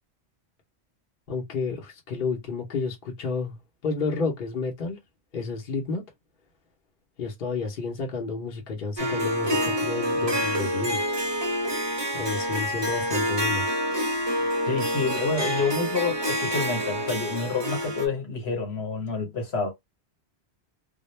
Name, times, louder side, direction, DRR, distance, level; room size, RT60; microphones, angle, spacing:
voice 1, 1.3-5.0 5.3-6.0 7.2-11.0 12.1-13.7, left 4 dB, 55° left, 0.9 m, -31 dB
Harp, 9.0-18.1, equal, 40° right, 0.4 m, -27 dB
voice 2, 14.7-19.7, left 4 dB, 70° left, 1.2 m, -28 dB
2.3 x 2.0 x 3.0 m
omnidirectional pair, 1.1 m